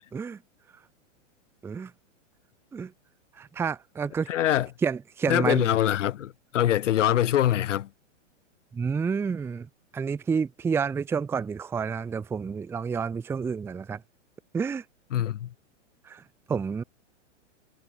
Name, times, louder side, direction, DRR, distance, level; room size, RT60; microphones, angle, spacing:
voice 1, 3.4-4.3 4.8-5.7 8.7-9.7 9.9-14.0 14.5-14.8 16.0-16.2 16.5-16.8, right 6 dB, 5° right, 0.7 m, -29 dB
voice 2, 4.3-4.7 5.3-7.9 15.1-15.5, left 11 dB, 70° left, 3.4 m, -24 dB
hypercardioid pair, 155°, 38 cm